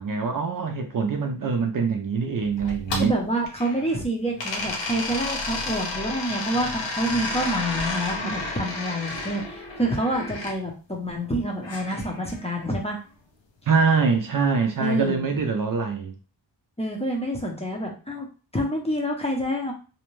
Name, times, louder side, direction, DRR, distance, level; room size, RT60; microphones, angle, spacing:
voice 1, 0.0-3.1 8.2-8.4 13.7-16.1, right 5 dB, 50° right, 0.5 m, -24 dB
sound 1, 2.6-4.0 4.4-10.5 11.6-12.8, left 2 dB, 90° left, 0.7 m, -32 dB
voice 2, 3.0-13.0 14.8-15.2 16.8-18.3 18.5-19.7, right 1 dB, 15° left, 0.6 m, -27 dB
2.6 x 2.1 x 3.0 m
wide cardioid pair, 115°, 43 cm